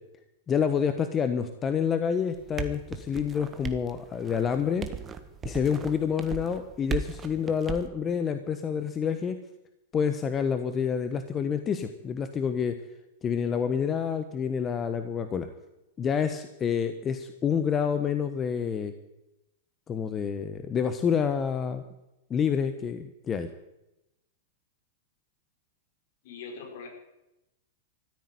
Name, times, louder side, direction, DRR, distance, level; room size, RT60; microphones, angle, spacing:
voice 1, 0.5-4.9 5.4-9.4 9.9-12.8 13.2-15.5 16.0-18.9 19.9-21.8 22.3-23.5, left 7 dB, 25° left, 10 dB, 1.1 m, -28 dB
sound 1, 2.3-7.9, right 7 dB, 25° right, 1.5 m, -37 dB
voice 2, 26.2-26.9, left 5 dB, 65° left, 3 dB, 5.3 m, -41 dB
14.5 x 9.3 x 9.5 m, 0.92 s
hypercardioid pair, 115°, 0 cm